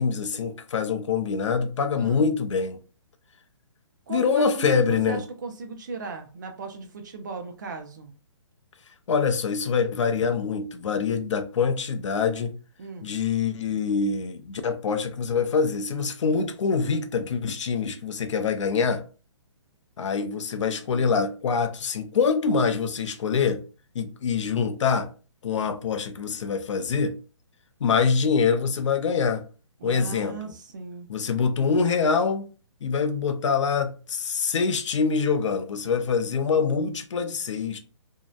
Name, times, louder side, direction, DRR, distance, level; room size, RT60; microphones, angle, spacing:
voice 1, 0.0-2.8 4.1-5.2 9.1-12.5 13.0-19.0 20.0-23.6 23.9-25.1 25.4-27.2 27.8-29.4 29.8-30.5 31.1-32.5 32.8-37.8, left 5 dB, 70° left, 0.5 m, -25 dB
voice 2, 4.1-8.1 12.8-13.1 29.8-31.1, right 4 dB, 40° right, 0.4 m, -37 dB
2.7 x 2.0 x 2.3 m
hypercardioid pair, 170°, 16 cm